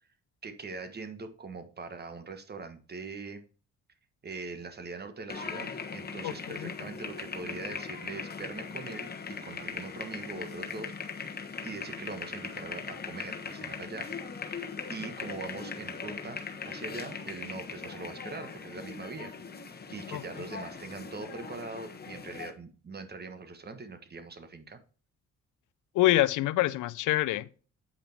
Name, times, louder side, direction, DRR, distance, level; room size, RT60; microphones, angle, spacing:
voice 1, 0.4-3.4 4.2-10.9 11.6-14.1 14.9-19.3 19.9-24.8, right 3 dB, 35° right, 1.5 m, -42 dB
sound 1, 5.3-22.5, left 5 dB, 30° left, 1.3 m, -40 dB
voice 2, 6.2-6.7 20.1-20.2 25.9-27.5, left 16 dB, 85° left, 0.6 m, -26 dB
8.7 x 5.1 x 4.4 m
cardioid pair, 90°, 30 cm